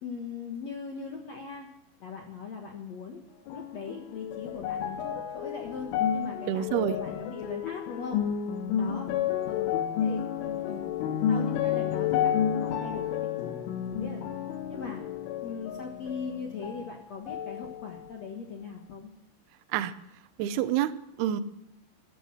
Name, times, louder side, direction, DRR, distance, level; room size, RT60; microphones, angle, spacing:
voice 1, 0.0-1.7 2.0-3.2 3.5-8.2 8.8-9.1 9.4-9.7 10.0-10.9 11.3-14.2 14.7-15.0 15.4-19.1, left 5 dB, 65° left, 2 dB, 1.7 m, -40 dB
sound 1, 3.5-16.9 17.3-18.2 18.9-19.0, left 9 dB, 85° left, 3.8 m, -31 dB
voice 2, 6.5-7.0 19.7-19.9 20.4-21.4, right 11 dB, 80° right, 11 dB, 2.4 m, -28 dB
13.5 x 13.5 x 7.8 m, 0.87 s
omnidirectional pair, 5.5 m